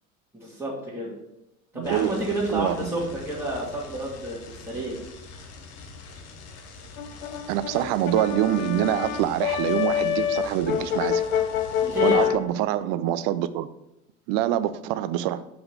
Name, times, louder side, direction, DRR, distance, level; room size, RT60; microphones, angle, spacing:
voice 1, 0.3-1.1 1.7-5.0 11.8-12.4, right 1 dB, 5° right, 1.8 m, -30 dB
voice 2, 1.7-2.2 2.5-2.9 7.5-11.2 12.0-13.7 14.3-15.4, right 12 dB, 50° right, 0.5 m, -25 dB
sound 1, 1.8-12.3, left 3 dB, 35° left, 0.9 m, -44 dB
Brass instrument, 7.0-12.4, left 9 dB, 80° left, 0.6 m, -26 dB
5.4 x 3.4 x 5.8 m
figure-of-eight pair, 75°, 42 cm